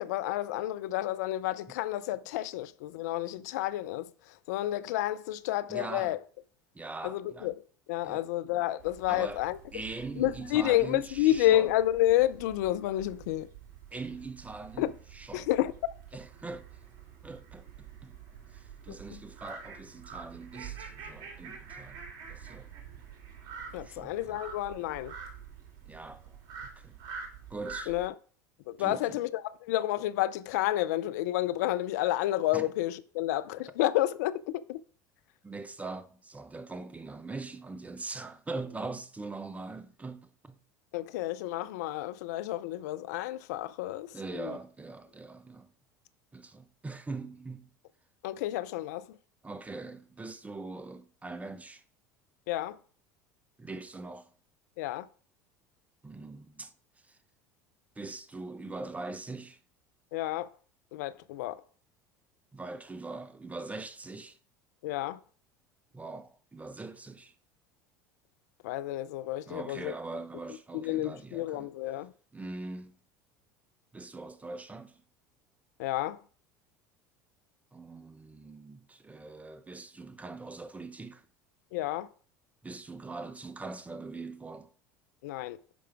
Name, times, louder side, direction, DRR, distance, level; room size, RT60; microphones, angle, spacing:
voice 1, 0.0-6.2 7.0-9.6 10.2-13.5 14.8-14.9 15.3-15.7 18.9-19.2 23.7-25.1 27.9-28.1 28.7-34.8 40.9-44.6 48.2-49.2 52.5-52.8 54.8-55.1 60.1-60.5 60.9-61.6 64.8-65.2 68.6-70.0 70.7-72.1 75.8-76.2 81.7-82.1 85.2-85.6, left 14 dB, 70° left, 0.5 m, -30 dB
voice 2, 5.7-6.1 6.7-7.5 8.0-8.2 9.1-9.4 9.7-11.7 13.9-15.5 16.1-16.7 17.2-18.2 18.5-22.0 22.3-22.7 23.8-24.4 25.9-27.0 27.5-27.9 28.8-29.2 32.5-32.7 35.4-40.6 44.1-45.7 46.3-47.7 49.4-51.8 53.6-54.3 56.0-56.7 57.0-57.2 58.0-59.6 62.5-64.4 65.9-67.3 69.5-71.7 72.3-73.0 73.9-75.0 77.7-81.3 82.6-84.7, right 3 dB, 15° right, 0.8 m, -42 dB
sound 1, 8.8-28.1, right 6 dB, 55° right, 2.3 m, -47 dB
11.0 x 4.9 x 3.5 m
hypercardioid pair, 75°, 9 cm